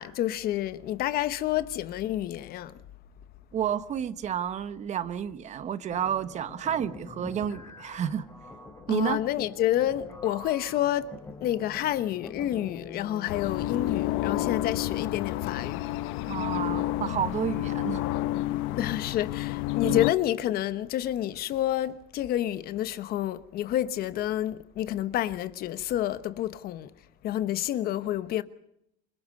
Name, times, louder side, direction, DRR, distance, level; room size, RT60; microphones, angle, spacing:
voice 1, 0.0-2.8 8.9-11.1 11.4-15.8 16.2-16.3 18.8-26.9 27.2-28.4, left 12 dB, 45° left, 1.1 m, -29 dB
voice 2, 3.5-8.3 8.9-9.2 16.3-18.0 19.8-20.0, right 9 dB, 35° right, 1.2 m, -30 dB
sound 1, 5.9-15.4, left 4 dB, 15° left, 3.6 m, -45 dB
sound 2, 13.3-20.1, left 16 dB, 70° left, 1.2 m, -30 dB
28.0 x 22.5 x 5.4 m
cardioid pair, 145°, 21 cm